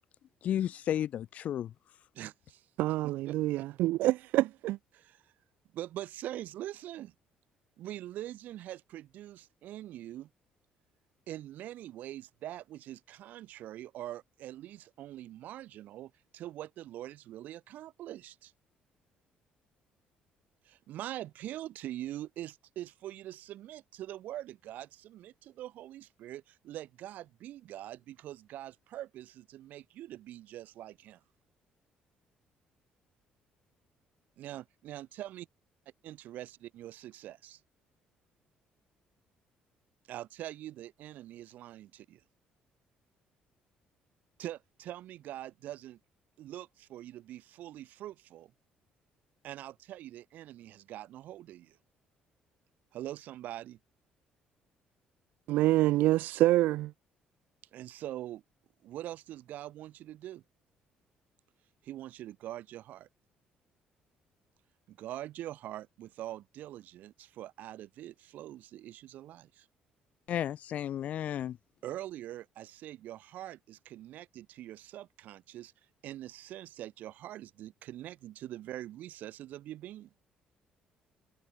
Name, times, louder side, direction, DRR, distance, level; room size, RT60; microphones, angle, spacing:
voice 1, 0.4-1.7 70.3-71.6, left 10 dB, 55° left, 1.3 m, -33 dB
voice 2, 2.1-2.7 3.0-3.7 4.9-5.3 5.7-7.1 7.8-10.3 11.3-18.5 20.7-31.2 34.4-35.5 36.0-37.6 40.1-42.2 44.4-46.0 46.4-48.5 49.4-51.8 52.9-53.8 57.7-58.4 58.8-60.4 61.8-63.1 64.9-69.7 71.8-75.7 76.0-80.1, right 13 dB, 70° right, 4.0 m, -43 dB
voice 3, 2.8-4.8 55.5-56.9, right 16 dB, 85° right, 0.9 m, -26 dB
cardioid pair, 145°, 3 cm